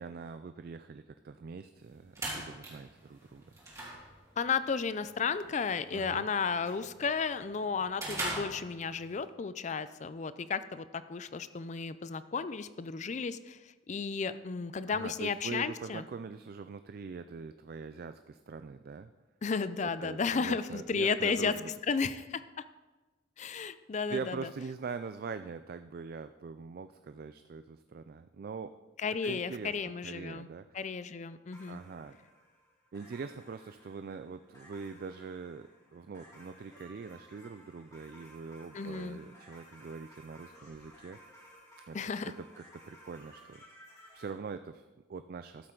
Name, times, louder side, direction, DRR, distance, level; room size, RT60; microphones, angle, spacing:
voice 1, 0.0-3.4 5.9-6.2 14.9-19.1 19.8-21.7 24.1-28.7 29.2-30.7 31.7-32.2 32.9-41.2 41.9-42.0 42.4-43.6 44.1-45.7, right 5 dB, 50° right, 10 dB, 0.3 m, -43 dB
sound 1, 1.8-9.2, right 1 dB, 15° right, 2.5 m, -43 dB
voice 2, 4.4-16.0 19.4-21.5 21.9-22.6 23.4-24.5 29.0-30.5 30.7-31.8 38.7-39.2 41.9-42.3, left 5 dB, 40° left, 14 dB, 0.4 m, -33 dB
sound 2, 31.5-44.3, equal, 20° left, 2.6 m, -57 dB
13.0 x 7.8 x 3.9 m, 1.2 s
head